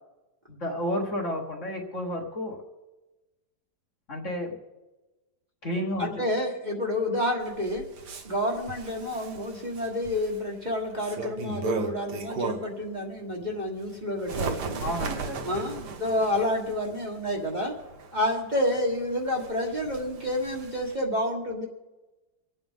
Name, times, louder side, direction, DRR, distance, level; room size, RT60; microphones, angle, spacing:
voice 1, 0.5-2.6 4.1-4.6 5.6-6.1 14.8-15.6, equal, 45° left, 0 dB, 2.0 m, -31 dB
voice 2, 6.0-7.8 8.2-14.9 15.4-17.7 18.1-21.7, left 1 dB, 30° right, -2 dB, 1.4 m, -29 dB
Bird, 7.4-12.8 13.3-21.0, right 4 dB, 80° right, 1.7 m, -37 dB
25.5 x 8.8 x 3.6 m, 1.1 s
omnidirectional pair, 1.8 m